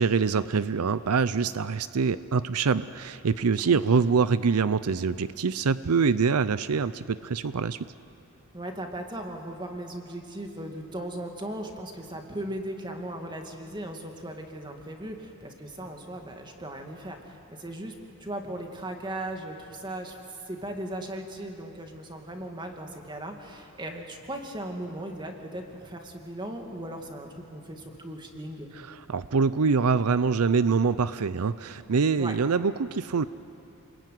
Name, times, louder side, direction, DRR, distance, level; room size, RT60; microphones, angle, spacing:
voice 1, 0.0-7.8 29.1-33.3, right 5 dB, 80° right, 15 dB, 0.6 m, -24 dB
voice 2, 3.5-4.0 8.5-20.2 20.5-28.7 32.2-32.4, right 1 dB, 20° right, 3 dB, 2.3 m, -38 dB
29.0 x 21.0 x 9.4 m, 2.9 s
head